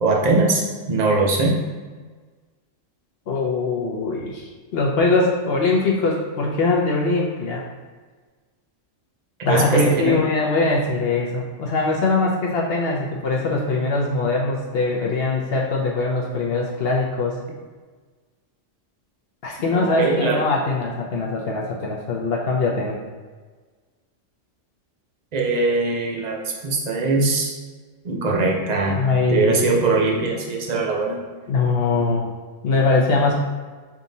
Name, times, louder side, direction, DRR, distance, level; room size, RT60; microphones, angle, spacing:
voice 1, 0.0-1.6 9.5-10.2 19.6-20.4 25.3-27.5 28.0-29.0 29.3-31.2, right 3 dB, 50° right, -1 dB, 0.5 m, -21 dB
voice 2, 3.3-7.6 9.4-17.4 19.4-23.0 28.9-29.8 31.5-32.3 32.6-33.3, left 3 dB, 60° left, -2 dB, 0.7 m, -22 dB
3.5 x 2.7 x 4.0 m, 1.4 s
omnidirectional pair, 1.3 m